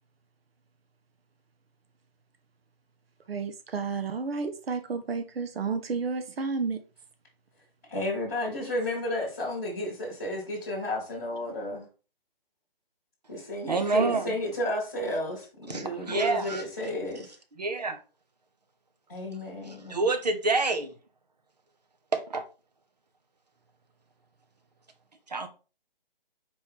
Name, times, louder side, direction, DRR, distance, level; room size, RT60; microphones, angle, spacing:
voice 1, 3.3-6.8, right 4 dB, 85° right, 0.7 m, -31 dB
voice 2, 7.9-11.9 13.3-17.3 19.1-20.0, left 1 dB, 20° left, 1.0 m, -32 dB
voice 3, 13.7-14.4 15.7-16.6 17.6-18.0 19.7-20.9 22.1-22.4 25.3-25.5, right 3 dB, 45° right, 0.6 m, -27 dB
4.3 x 2.9 x 3.5 m
hypercardioid pair, 180°, 29 cm